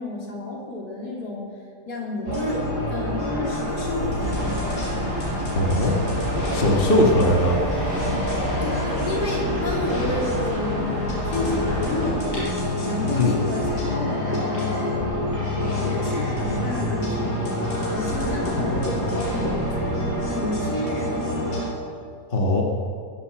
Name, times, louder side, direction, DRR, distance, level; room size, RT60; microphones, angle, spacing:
voice 1, 0.0-1.5 1.9-4.6 7.0-7.2 8.6-11.0 11.2-15.3 15.6-17.6 17.9-19.6 20.2-21.7, left 2 dB, 70° left, -3 dB, 3.8 m, -31 dB
sound 1, 2.3-21.7, left 1 dB, 85° left, 5.3 m, -27 dB
sound 2, 3.7-12.1, right 1 dB, 65° right, 3.5 m, -39 dB
sound 3, 4.2-12.1, left 1 dB, 40° right, 5.5 m, -30 dB
voice 2, 5.5-5.9 6.5-7.5 13.1-13.3 22.3-22.6, left 1 dB, 35° left, 0 dB, 1.7 m, -20 dB
21.5 x 8.4 x 7.8 m, 2.2 s
omnidirectional pair, 1.7 m